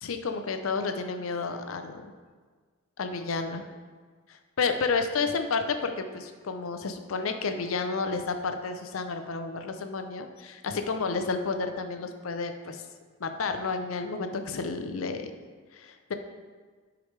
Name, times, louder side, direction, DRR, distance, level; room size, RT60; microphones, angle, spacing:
voice 1, 0.0-2.1 3.0-3.6 4.6-12.8 13.2-15.3 15.7-16.1, left 4 dB, 90° left, 7 dB, 0.6 m, -31 dB
8.0 x 4.9 x 3.2 m, 1.5 s
head